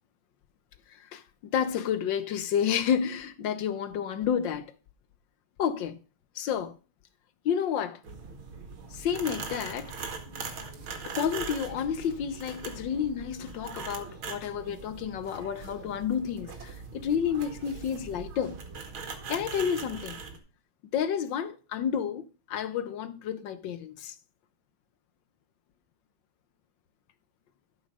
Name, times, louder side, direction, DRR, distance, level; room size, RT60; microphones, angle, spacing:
voice 1, 0.9-4.7 5.6-6.0 6.3-6.8 7.4-8.0 8.9-9.9 11.0-18.6 19.3-20.2 20.9-24.1, left 8 dB, 65° left, 1.3 m, -30 dB
sound 1, 8.0-20.4, right 5 dB, 70° right, 2.5 m, -41 dB
12.0 x 6.5 x 5.3 m
omnidirectional pair, 2.4 m